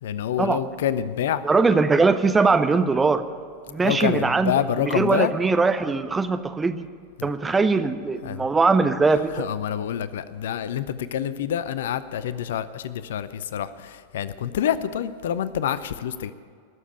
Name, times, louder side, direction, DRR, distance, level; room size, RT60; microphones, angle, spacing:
voice 1, 0.0-1.5 3.8-5.3 7.2-7.3 8.2-8.5 9.3-16.3, left 9 dB, 60° left, 15 dB, 0.6 m, -27 dB
voice 2, 1.4-3.2 3.7-4.5 4.8-6.9 7.2-9.4, right 4 dB, 15° right, 10 dB, 0.8 m, -21 dB
19.0 x 7.3 x 8.9 m, 2.1 s
figure-of-eight pair, 90°, 0 cm